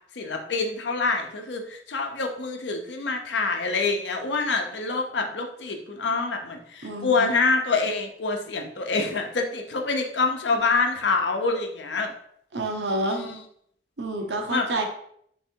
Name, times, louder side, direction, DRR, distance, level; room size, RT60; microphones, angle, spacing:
voice 1, 0.2-12.1 13.0-13.4 14.5-14.7, left 4 dB, 85° left, 3 dB, 0.8 m, -26 dB
voice 2, 6.8-7.4 12.5-13.2 14.0-14.8, right 1 dB, 85° right, 3 dB, 0.9 m, -28 dB
3.4 x 3.1 x 4.5 m, 0.68 s
head